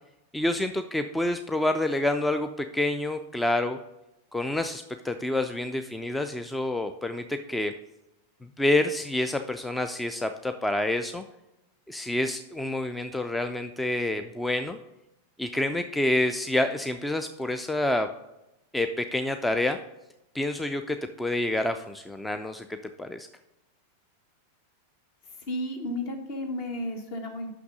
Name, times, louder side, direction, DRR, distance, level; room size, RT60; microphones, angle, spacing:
voice 1, 0.3-3.8 4.3-7.7 8.6-11.2 11.9-14.8 15.4-18.1 18.7-19.8 20.3-23.3, left 1 dB, 5° left, 8 dB, 0.4 m, -28 dB
voice 2, 25.5-27.5, left 1 dB, 45° left, 5 dB, 1.4 m, -33 dB
5.9 x 5.8 x 5.3 m, 0.93 s
figure-of-eight pair, 90°, 0 cm